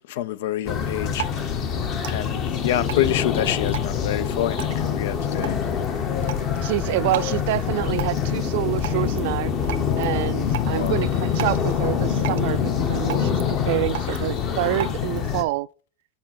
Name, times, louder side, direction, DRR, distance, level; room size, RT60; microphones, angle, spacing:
voice 1, 0.1-5.6 10.7-11.1, left 13 dB, 80° left, 0.5 m, -27 dB
sound 1, 0.6-15.4, left 7 dB, 30° left, 0.9 m, -25 dB
Drip, 0.8-15.3, right 10 dB, 85° right, 0.8 m, -38 dB
voice 2, 6.6-9.5 10.0-15.7, right 17 dB, 65° right, 0.3 m, -27 dB
7.1 x 5.1 x 5.9 m
supercardioid pair, 175°, 0 cm